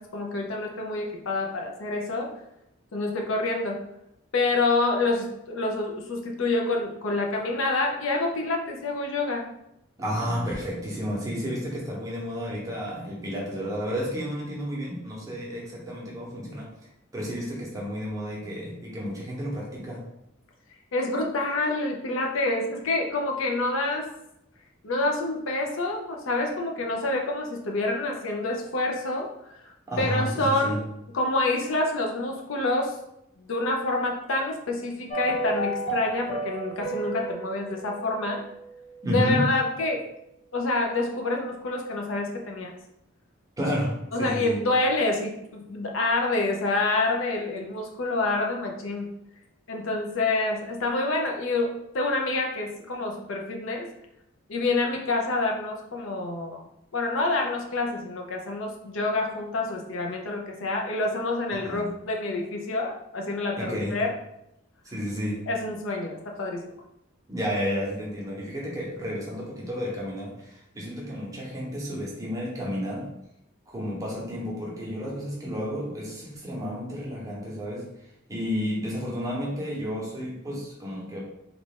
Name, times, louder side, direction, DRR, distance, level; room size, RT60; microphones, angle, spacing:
voice 1, 0.0-2.3 2.9-3.8 4.3-9.5 20.9-24.1 24.8-29.3 30.0-30.8 31.1-33.0 33.4-38.4 39.1-40.0 40.5-42.7 44.1-49.1 49.7-53.9 54.5-56.6 56.9-64.1 65.5-66.7, left 2 dB, 75° left, 1 dB, 0.6 m, -27 dB
voice 2, 10.0-16.7 17.1-20.1 29.9-30.8 39.0-39.5 43.6-44.6 61.6-61.9 63.5-64.0 64.8-65.5 67.3-73.1 73.7-77.9 78.3-81.2, equal, 15° right, -4 dB, 0.8 m, -31 dB
sound 1, 35.1-39.4 39.6-39.7, right 3 dB, 35° left, 0.6 m, -33 dB
3.1 x 2.4 x 3.6 m, 0.82 s
head